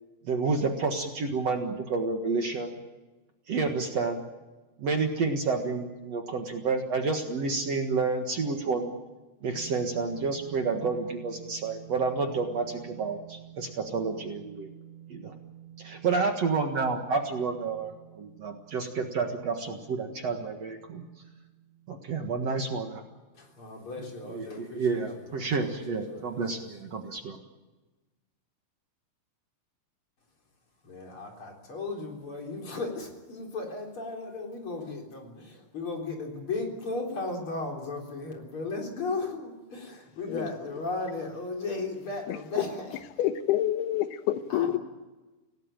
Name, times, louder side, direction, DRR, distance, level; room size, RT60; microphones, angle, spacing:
voice 1, 0.3-2.7 3.5-4.2 4.8-8.9 9.4-14.7 15.1-15.3 15.8-21.0 21.9-23.0 24.3-27.4, right 4 dB, 50° right, 4 dB, 2.3 m, -30 dB
sound 1, 9.4-23.8, right 12 dB, 10° right, 5.5 m, -50 dB
voice 2, 23.3-25.5 25.9-26.6 30.8-43.0 44.5-44.8, left 3 dB, 35° left, 1 dB, 4.4 m, -36 dB
voice 3, 43.2-44.8, left 12 dB, 85° left, 10 dB, 3.0 m, -27 dB
26.5 x 18.0 x 9.0 m, 1.2 s
omnidirectional pair, 4.4 m